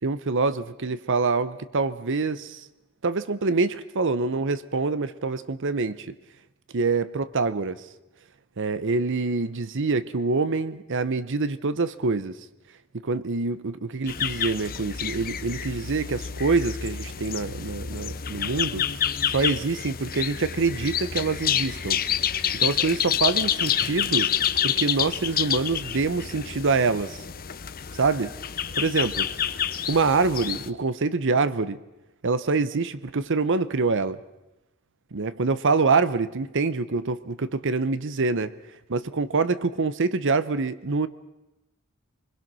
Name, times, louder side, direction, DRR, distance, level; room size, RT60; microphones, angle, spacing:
voice 1, 0.0-2.7 3.0-6.1 6.7-7.9 8.6-12.4 12.9-22.0 22.6-24.3 24.6-27.2 27.9-28.3 28.8-29.5 29.9-31.8 32.2-34.2 35.1-38.5 38.9-41.1, right 4 dB, 60° right, 14 dB, 0.8 m, -25 dB
sound 1, 14.1-30.7, left 9 dB, 40° left, 0.8 m, -28 dB
26.5 x 21.0 x 6.2 m, 0.97 s
head